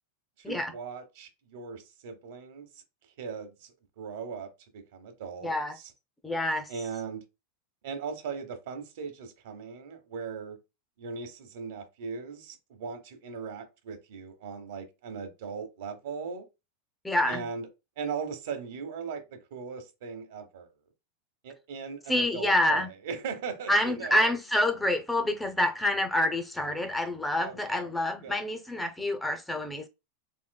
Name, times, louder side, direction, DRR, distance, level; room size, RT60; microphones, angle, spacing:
voice 1, 0.4-2.8 3.2-5.9 6.7-7.2 7.8-10.6 11.0-16.5 17.3-17.7 18.0-20.7 21.4-24.3 27.4-27.9 28.2-28.4, right 5 dB, 70° right, 0.8 m, -39 dB
voice 2, 5.4-5.7 6.2-6.7 17.0-17.4 22.1-22.9 23.7-29.9, left 1 dB, 5° left, 0.4 m, -27 dB
3.5 x 2.7 x 2.2 m
supercardioid pair, 155°, 0 cm